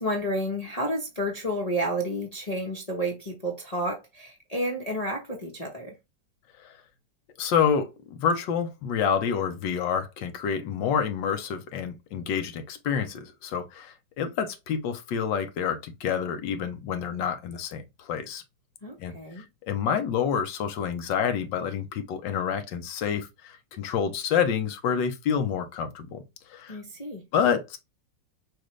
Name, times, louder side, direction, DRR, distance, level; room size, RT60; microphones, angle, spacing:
voice 1, 0.0-6.0 18.8-19.4 26.7-27.2, equal, 30° left, 0.8 m, -31 dB
voice 2, 7.4-18.4 19.0-26.2 26.5-26.8 27.3-27.8, left 7 dB, 85° left, 1.5 m, -28 dB
6.3 x 2.5 x 3.2 m
omnidirectional pair, 1.9 m